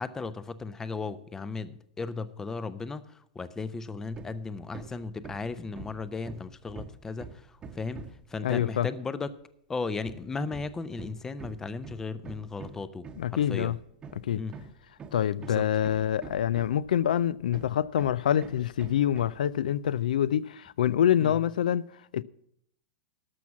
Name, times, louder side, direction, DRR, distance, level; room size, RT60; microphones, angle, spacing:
voice 1, 0.0-9.3 9.7-13.8 14.3-14.6 15.4-15.7 21.2-21.3, left 4 dB, 10° left, 0.5 m, -36 dB
Hammer, 4.1-4.4 4.7-8.3 10.0-17.0 17.5-19.4, right 5 dB, 20° right, 0.9 m, -45 dB
voice 2, 8.4-8.9 13.2-13.8 14.3-14.4 15.1-21.8 22.1-22.2, left 10 dB, 90° left, 0.4 m, -26 dB
12.5 x 6.0 x 7.1 m
supercardioid pair, 140°, 4 cm